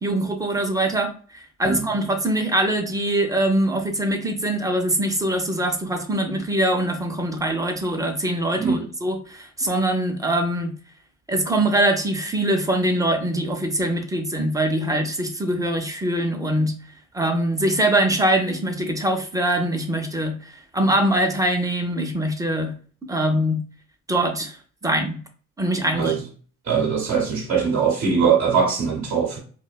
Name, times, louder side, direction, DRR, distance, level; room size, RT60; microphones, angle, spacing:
voice 1, 0.0-10.7 11.3-16.7 17.1-22.7 23.1-23.6 24.1-24.6 24.8-25.2 25.6-26.2, right 1 dB, 10° right, 0.5 m, -23 dB
voice 2, 8.6-8.9 25.9-26.2 26.7-29.4, right 6 dB, 50° right, 0.7 m, -21 dB
2.5 x 2.1 x 2.2 m
cardioid pair, 90°, 30 cm